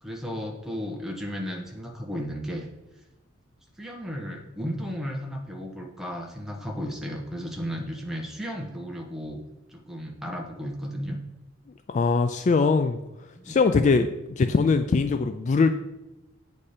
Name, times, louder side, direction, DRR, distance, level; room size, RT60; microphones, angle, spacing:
voice 1, 0.0-2.7 3.8-9.4 9.7-11.2 13.3-13.6, equal, ahead, 0 dB, 1.1 m, -34 dB
voice 2, 11.9-15.7, left 4 dB, 35° left, 8 dB, 0.3 m, -22 dB
8.6 x 4.2 x 5.0 m, 0.98 s
head